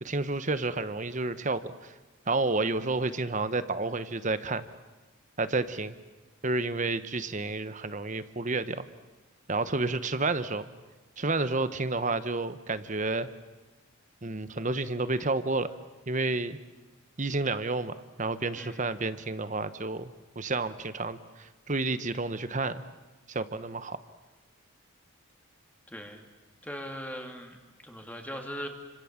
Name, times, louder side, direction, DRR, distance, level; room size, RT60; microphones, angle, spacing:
voice 1, 0.0-1.9 2.3-4.6 5.4-5.9 6.4-8.9 9.5-10.7 11.2-13.3 14.2-15.7 16.1-16.6 17.2-22.8 23.3-24.0, right 3 dB, 35° right, 12 dB, 1.1 m, -30 dB
voice 2, 25.9-26.2 26.6-28.7, equal, 5° left, 3 dB, 2.4 m, -40 dB
29.5 x 26.0 x 7.4 m, 1.2 s
head